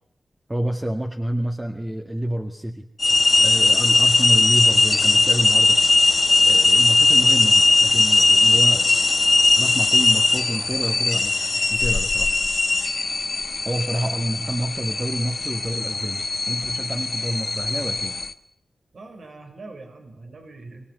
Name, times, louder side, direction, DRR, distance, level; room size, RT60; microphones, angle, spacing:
voice 1, 0.5-2.9 3.4-5.8 6.4-8.9 9.5-12.3 13.6-18.2, right 1 dB, 20° right, 2 dB, 1.9 m, -28 dB
sound 1, 3.0-18.3, left 3 dB, 40° left, 1.4 m, -19 dB
voice 2, 18.9-20.8, right 3 dB, 70° right, 5 dB, 5.7 m, -42 dB
25.0 x 19.0 x 9.4 m, 0.71 s
wide cardioid pair, 90°, 0 cm